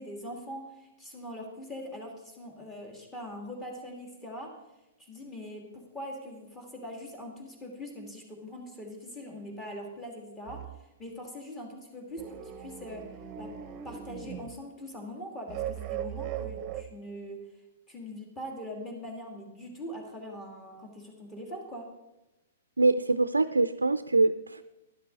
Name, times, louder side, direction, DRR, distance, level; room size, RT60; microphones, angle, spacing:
voice 1, 0.0-4.5 5.0-10.6 11.0-13.1 13.4-13.5 13.8-17.4 17.9-21.9, equal, 15° left, 2 dB, 2.6 m, -42 dB
sound 1, 10.5-10.7 12.2-14.6 15.5-16.8, right 10 dB, 30° right, 0.9 m, -38 dB
voice 2, 22.8-24.6, right 3 dB, 85° right, 12 dB, 0.4 m, -24 dB
12.0 x 11.5 x 4.1 m, 0.98 s
figure-of-eight pair, 115°, 0 cm